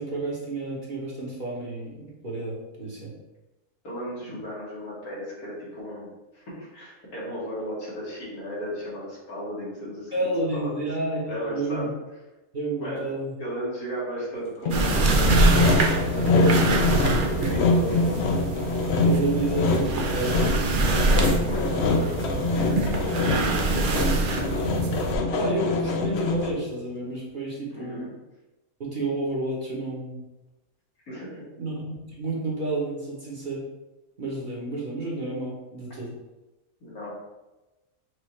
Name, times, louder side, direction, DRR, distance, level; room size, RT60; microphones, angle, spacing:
voice 1, 0.0-3.1 10.1-11.9 12.5-13.3 19.0-20.9 25.3-28.1 28.8-30.2 31.6-33.6 34.2-36.1, right 2 dB, 35° right, -5 dB, 1.1 m, -30 dB
voice 2, 3.8-6.1 6.3-10.7 11.2-11.9 12.8-13.0 13.4-15.8 16.1-16.7 17.2-18.1 21.5-23.0 23.4-24.1 27.7-28.1 31.1-31.4 36.8-37.2, equal, 90° left, -7 dB, 2.3 m, -35 dB
Sawing, 14.7-26.7, left 3 dB, 65° left, 0.7 m, -25 dB
sound 1, 14.7-25.1, right 2 dB, 65° right, 0.5 m, -25 dB
6.2 x 2.6 x 3.1 m, 1.0 s
omnidirectional pair, 1.5 m